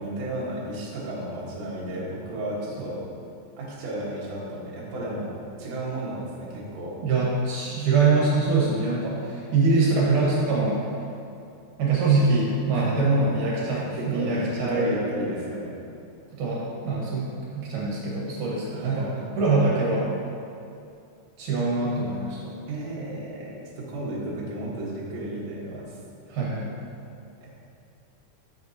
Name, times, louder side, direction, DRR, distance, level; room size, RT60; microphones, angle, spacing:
voice 1, 0.0-3.0 3.6-5.3 5.6-7.0 12.7-13.2 13.7-15.7 18.7-19.6 22.7-26.0 27.4-27.5, right 1 dB, 85° right, -6 dB, 1.5 m, -33 dB
voice 2, 7.0-10.8 11.8-14.9 16.4-19.1 19.4-20.1 21.4-22.5 26.3-26.7, right 3 dB, 70° right, -5 dB, 2.0 m, -24 dB
10.5 x 7.2 x 2.7 m, 2.5 s
omnidirectional pair, 5.3 m